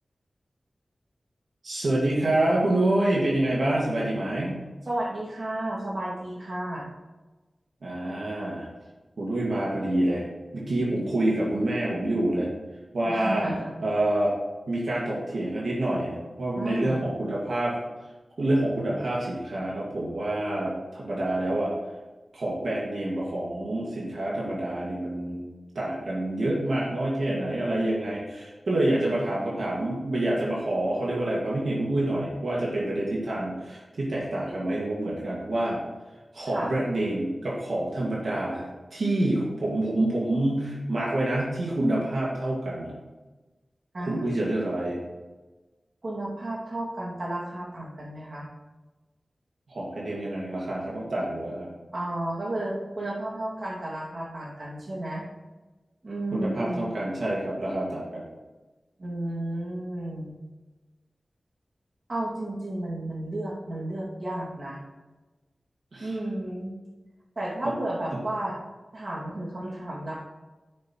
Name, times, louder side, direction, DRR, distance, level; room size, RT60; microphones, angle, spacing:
voice 1, 1.6-4.5 7.8-8.7 9.2-10.2 10.5-12.5 12.9-13.5 13.8-14.3 14.7-17.8 18.4-21.7 22.3-25.5 25.8-35.8 36.3-38.7 38.9-42.9 44.1-45.0 49.7-51.7 56.3-58.2 65.9-66.1, right 1 dB, 80° right, -5 dB, 2.0 m, -27 dB
voice 2, 4.8-6.9 13.0-13.7 16.5-17.1 36.5-36.7 43.9-44.3 46.0-48.5 51.9-55.3 56.0-56.8 59.0-60.4 62.1-64.8 66.0-66.7 67.4-68.6 68.9-70.2, right 1 dB, 55° right, -5 dB, 2.4 m, -32 dB
9.9 x 7.4 x 3.1 m, 1.2 s
wide cardioid pair, 75°, 0 cm